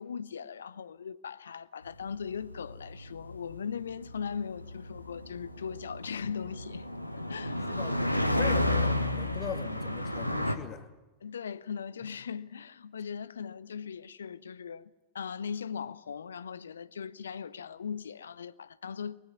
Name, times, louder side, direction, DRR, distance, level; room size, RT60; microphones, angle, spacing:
voice 1, 0.0-6.9 7.1-7.7 11.2-19.2, left 7 dB, 70° left, 0.8 m, -39 dB
sound 1, 2.1-10.6, left 1 dB, 90° left, 1.4 m, -32 dB
voice 2, 7.7-10.9, left 9 dB, 35° left, 1.9 m, -41 dB
23.5 x 20.5 x 9.6 m
figure-of-eight pair, 90°, 0 cm